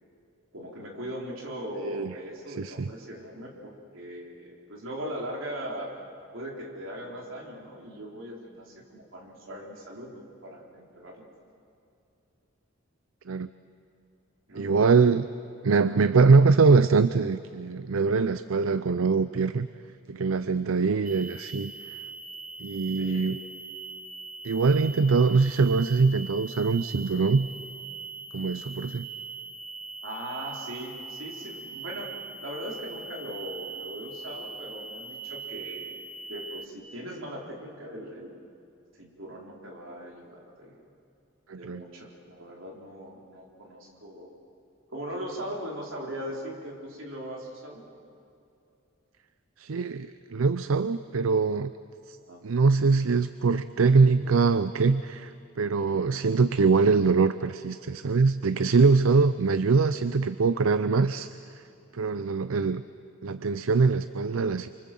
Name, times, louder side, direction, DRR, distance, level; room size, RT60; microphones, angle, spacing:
voice 1, 0.5-5.9 6.3-11.3 14.5-14.6 15.8-16.3 23.0-23.3 30.0-32.1 32.4-36.0 36.3-38.4 38.9-40.7 41.5-44.3 44.9-47.8 52.2-52.4 62.2-62.4, equal, 70° right, -1 dB, 4.1 m, -39 dB
voice 2, 1.8-2.1 2.6-2.9 13.3-13.5 14.5-15.3 15.6-19.7 20.1-21.7 22.6-23.4 24.4-27.5 28.3-29.1 41.5-41.8 49.6-51.7 52.1-52.2 52.4-61.3 61.9-62.8 63.2-64.7, right 4 dB, 90° right, 13 dB, 0.5 m, -23 dB
sound 1, 21.0-36.7, right 4 dB, 40° right, 1.4 m, -41 dB
28.5 x 24.5 x 7.6 m, 2.6 s
head